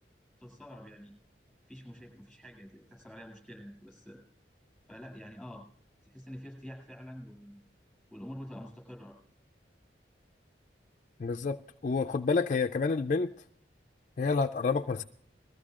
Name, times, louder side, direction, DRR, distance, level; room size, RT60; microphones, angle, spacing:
voice 1, 0.4-1.1 1.7-4.2 4.9-5.6 6.0-7.6 8.1-9.2, equal, ahead, 7.6 m, -47 dB
voice 2, 11.2-11.6 11.8-13.3 14.2-15.0, left 4 dB, 45° left, 0.4 m, -28 dB
21.5 x 14.5 x 2.4 m
head